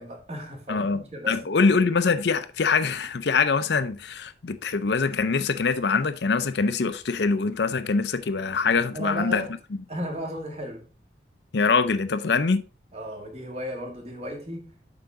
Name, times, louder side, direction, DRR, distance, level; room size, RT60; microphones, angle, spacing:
voice 1, 0.0-1.8 8.9-9.5 9.9-10.8 12.2-12.4 12.9-14.7, equal, 35° right, 2.0 m, -35 dB
voice 2, 0.7-9.4 11.5-12.6, left 4 dB, 70° left, 0.6 m, -24 dB
7.7 x 5.8 x 3.5 m
head